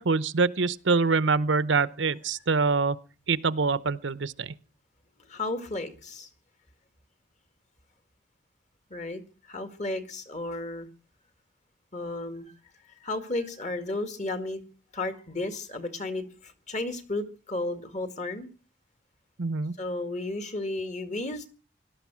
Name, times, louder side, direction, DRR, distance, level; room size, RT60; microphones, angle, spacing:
voice 1, 0.0-3.0 3.3-4.5 19.4-19.7, right 4 dB, 70° right, 0.8 m, -25 dB
voice 2, 5.3-6.3 8.9-9.2 9.5-10.9 11.9-12.5 13.0-14.6 14.9-18.5 19.8-21.5, left 2 dB, 35° left, 1.9 m, -33 dB
18.0 x 12.5 x 6.2 m
head